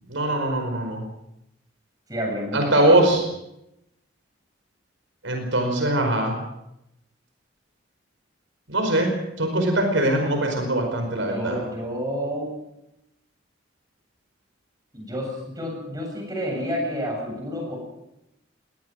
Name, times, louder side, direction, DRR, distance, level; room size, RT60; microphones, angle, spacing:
voice 1, 0.1-1.0 2.5-3.2 5.2-6.3 8.7-9.1 9.4-11.6, right 1 dB, 80° right, 3 dB, 5.0 m, -22 dB
voice 2, 2.1-3.1 11.2-12.5 14.9-17.8, equal, 20° right, 0 dB, 7.7 m, -30 dB
21.5 x 18.5 x 6.5 m, 0.86 s
head